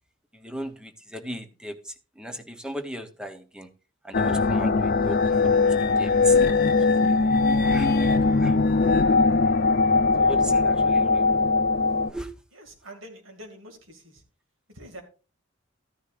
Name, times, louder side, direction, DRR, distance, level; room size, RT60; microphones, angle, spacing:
voice 1, 0.3-3.7 4.0-6.4 7.1-7.3 7.6-8.6 10.2-11.5 12.1-12.3, equal, 5° right, 7 dB, 0.8 m, -37 dB
sound 1, 4.1-12.1, left 3 dB, 50° left, 0.6 m, -20 dB
voice 2, 12.5-14.2 14.7-15.0, right 1 dB, 80° right, 4 dB, 2.2 m, -45 dB
13.5 x 10.0 x 2.5 m, 0.34 s
head